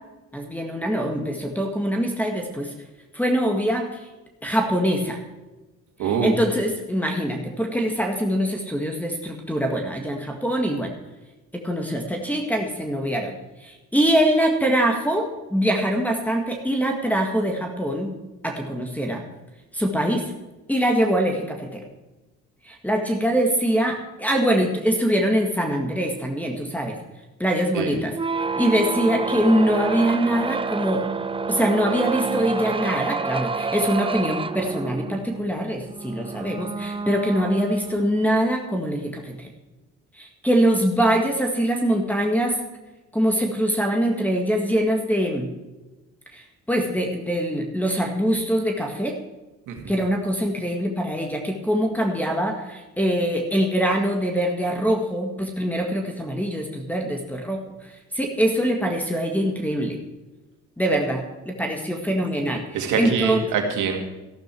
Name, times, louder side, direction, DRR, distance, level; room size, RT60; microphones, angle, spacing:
voice 1, 0.3-2.7 3.1-4.0 4.4-5.2 6.2-10.9 11.5-18.1 18.4-19.2 19.7-20.3 20.7-21.8 22.6-27.0 27.4-28.1 28.6-31.1 31.5-39.5 40.1-42.6 43.1-45.5 46.3-49.2 49.9-57.6 58.1-60.0 60.8-63.4, equal, 5° left, 2 dB, 1.8 m, -23 dB
voice 2, 6.0-6.4 27.7-28.0 49.7-49.8 62.7-64.0, right 6 dB, 85° right, 3 dB, 2.3 m, -24 dB
sound 1, 28.1-38.4, right 4 dB, 20° right, 0.6 m, -29 dB
14.0 x 11.5 x 4.5 m, 1.1 s
cardioid pair, 90°, 30 cm